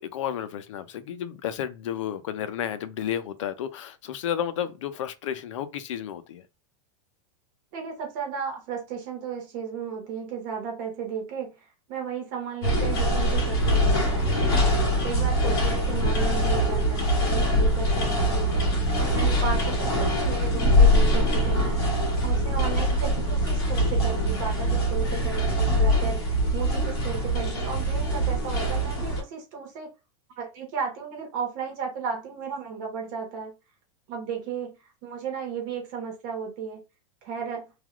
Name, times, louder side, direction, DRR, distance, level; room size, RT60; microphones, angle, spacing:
voice 1, 0.0-6.4, left 9 dB, 80° left, 0.5 m, -32 dB
voice 2, 7.7-14.6 15.0-18.7 19.1-21.9 22.2-29.9 30.4-33.5 34.1-36.8 37.2-37.6, right 6 dB, 40° right, 1.0 m, -34 dB
sound 1, 12.6-29.2, equal, 55° left, 1.5 m, -23 dB
3.2 x 2.4 x 2.3 m
supercardioid pair, 175°, 16 cm